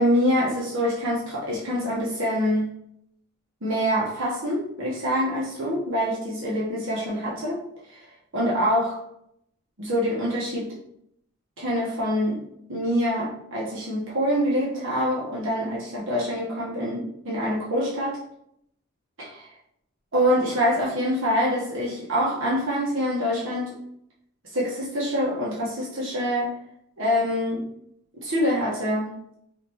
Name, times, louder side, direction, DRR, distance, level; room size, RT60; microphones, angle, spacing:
voice 1, 0.0-2.6 3.6-7.6 7.9-8.0 8.3-9.0 9.8-10.7 11.6-12.4 12.7-18.2 19.2-19.5 20.1-23.8 24.5-26.5 27.0-27.6 28.2-29.1, equal, 65° right, -6 dB, 1.3 m, -25 dB
5.0 x 3.3 x 3.0 m, 0.73 s
head